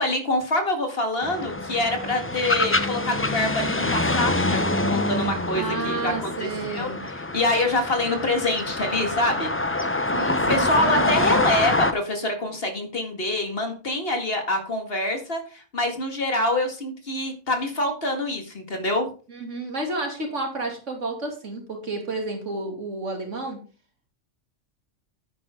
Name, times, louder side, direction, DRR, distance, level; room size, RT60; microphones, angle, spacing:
voice 1, 0.0-6.1 6.4-9.5 10.5-19.1, left 1 dB, 50° left, 4 dB, 2.2 m, -26 dB
sound 1, 1.2-11.9, left 2 dB, 15° left, 0.5 m, -25 dB
voice 2, 5.5-7.0 10.1-11.3 19.3-23.6, right 2 dB, 80° right, 2 dB, 3.1 m, -31 dB
9.9 x 9.2 x 3.7 m, 0.35 s
omnidirectional pair, 1.2 m